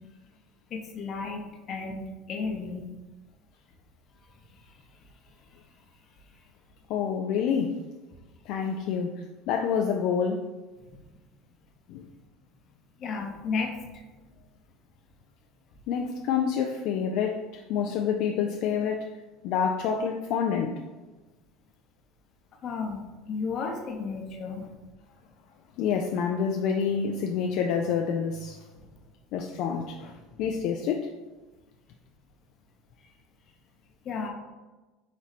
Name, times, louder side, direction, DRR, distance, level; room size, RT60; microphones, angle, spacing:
voice 1, 0.7-2.9 4.3-4.8 5.5-5.6 10.8-11.0 13.0-14.1 22.6-24.6 28.8-28.9 33.0-33.1 34.0-34.3, left 4 dB, 45° left, 2 dB, 0.8 m, -34 dB
voice 2, 6.9-7.8 8.5-10.5 11.9-12.0 15.9-19.1 19.4-20.8 25.8-28.6 29.3-30.1 30.4-31.1, left 7 dB, 65° left, 3 dB, 0.3 m, -27 dB
4.1 x 3.0 x 4.0 m, 1.2 s
supercardioid pair, 120°, 0 cm